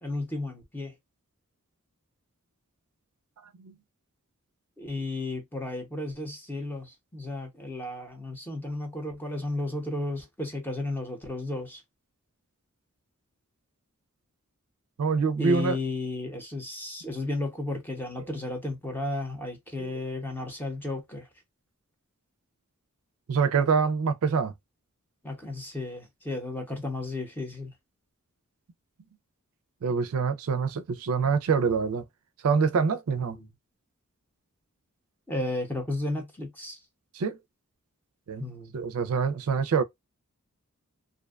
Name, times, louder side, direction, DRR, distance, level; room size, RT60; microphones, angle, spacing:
voice 1, 0.0-0.9 4.8-11.8 15.4-21.3 25.2-27.7 33.3-33.5 35.3-36.8 38.4-38.7, left 2 dB, 10° left, 0.7 m, -33 dB
voice 2, 15.0-15.8 19.8-19.9 23.3-24.5 29.8-32.0 32.4-33.4 37.1-37.4 38.3-38.4 38.7-39.8, right 5 dB, 80° right, 0.4 m, -25 dB
2.5 x 2.2 x 2.3 m
head